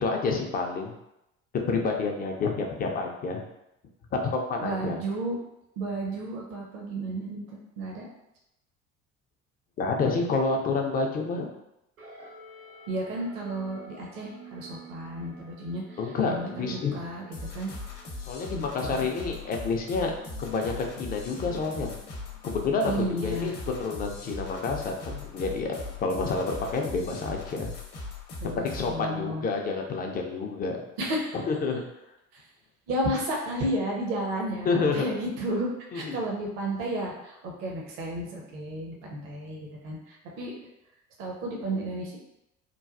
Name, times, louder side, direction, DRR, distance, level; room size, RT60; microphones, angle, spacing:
voice 1, 0.0-0.9 1.7-3.4 4.1-5.0 9.8-11.5 16.0-17.0 18.3-20.1 20.4-21.9 22.4-23.5 23.8-27.7 28.6-30.8 31.5-31.8 34.6-35.1 35.9-36.2, left 4 dB, 25° left, 2 dB, 0.4 m, -29 dB
voice 2, 4.6-5.4 5.8-8.0 12.9-16.0 16.3-17.3 17.5-17.7 18.5-19.1 22.8-23.5 28.4-29.4 31.0-31.4 32.3-32.4 32.9-40.5 41.2-42.2, right 1 dB, 55° right, -1 dB, 0.7 m, -32 dB
sound 1, 12.0-26.7, right 2 dB, 85° right, 0.9 m, -51 dB
sound 2, 17.3-29.0, left 3 dB, 45° left, 0.8 m, -40 dB
3.1 x 2.2 x 2.4 m, 0.85 s
figure-of-eight pair, 60°, 40 cm